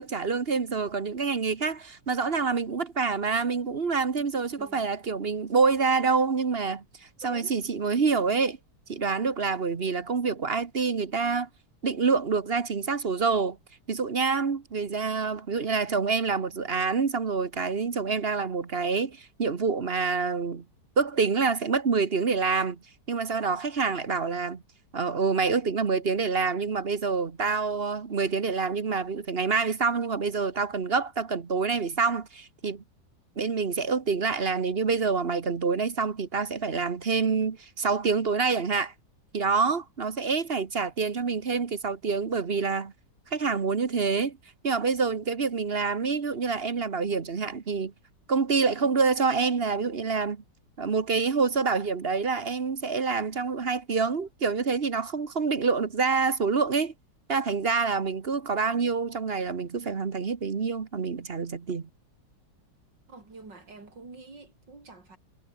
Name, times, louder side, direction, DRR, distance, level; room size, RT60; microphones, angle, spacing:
voice 1, 0.0-6.8 7.2-8.6 8.9-11.5 11.8-13.6 13.9-20.6 21.0-22.8 23.1-24.6 24.9-32.8 33.4-38.9 39.3-42.9 43.3-44.4 44.6-47.9 48.3-50.4 50.8-56.9 57.3-61.9, right 5 dB, 35° right, 1.3 m, -27 dB
voice 2, 4.5-4.9 7.2-7.6 48.7-49.0 63.1-65.2, right 3 dB, 80° right, 5.2 m, -47 dB
omnidirectional pair, 1.9 m